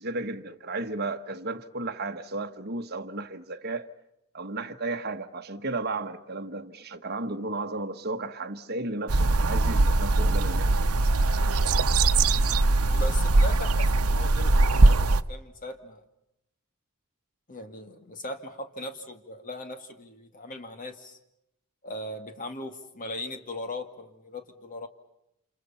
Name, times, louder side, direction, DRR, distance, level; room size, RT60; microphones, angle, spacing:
voice 1, 0.0-3.9 4.3-10.8, right 2 dB, 45° right, 1.3 m, -34 dB
sound 1, 9.1-15.2, right 2 dB, 85° right, 0.9 m, -21 dB
voice 2, 12.9-16.0 17.5-21.2 21.8-24.9, left 1 dB, 35° left, 2.1 m, -39 dB
28.5 x 28.5 x 5.7 m
head